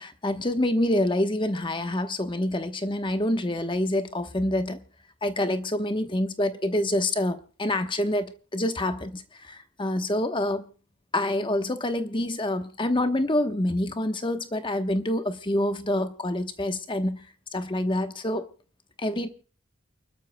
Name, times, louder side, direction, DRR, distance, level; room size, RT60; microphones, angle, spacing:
voice 1, 0.0-4.8 5.2-10.6 11.1-17.2 17.5-18.5 19.0-19.3, left 1 dB, 20° left, 1.0 m, -27 dB
29.0 x 12.5 x 2.2 m
head